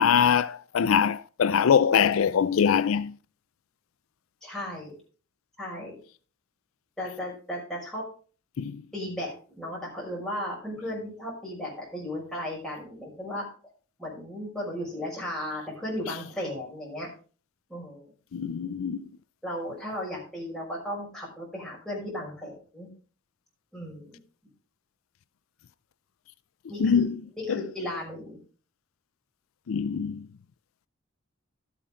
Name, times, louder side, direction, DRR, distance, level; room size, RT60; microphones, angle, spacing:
voice 1, 0.0-3.1 8.6-8.8 18.3-19.1 26.8-27.1 27.5-27.6 29.7-30.3, left 7 dB, 85° left, 0.4 m, -23 dB
voice 2, 4.4-5.0 5.6-6.0 7.0-8.1 8.9-13.5 14.0-17.1 17.7-18.1 19.4-22.9 23.7-24.2 26.7-28.4, left 1 dB, 5° left, 5.6 m, -35 dB
12.5 x 8.4 x 3.7 m
head